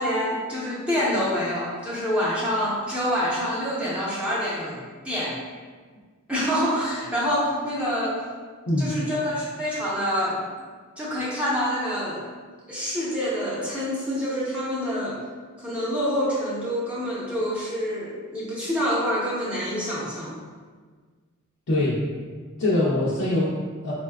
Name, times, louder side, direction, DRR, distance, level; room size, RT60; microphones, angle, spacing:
voice 1, 0.0-4.8 5.0-5.4 6.3-8.2 8.8-10.4 11.0-12.2 12.7-15.2 15.6-20.3, equal, 5° right, -8 dB, 0.7 m, -26 dB
voice 2, 21.7-22.0 22.6-23.9, left 1 dB, 65° left, -8 dB, 0.5 m, -23 dB
4.2 x 2.2 x 2.2 m, 1.5 s
head